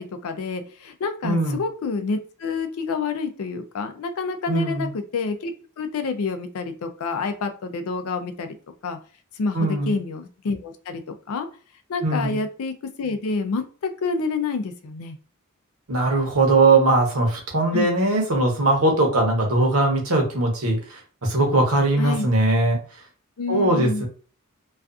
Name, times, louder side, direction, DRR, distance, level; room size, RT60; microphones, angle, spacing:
voice 1, 0.0-8.6 8.8-9.0 9.4-11.0 11.3-11.5 11.9-13.6 14.0-15.2 17.7-17.9 22.0-22.3 23.4-24.0, left 4 dB, 75° left, 8 dB, 0.4 m, -28 dB
voice 2, 1.2-1.6 4.5-4.9 9.5-10.0 12.0-12.4 15.9-20.8 21.2-22.8 23.5-24.1, right 2 dB, 75° right, 1 dB, 0.8 m, -20 dB
2.4 x 2.3 x 2.4 m, 0.40 s
head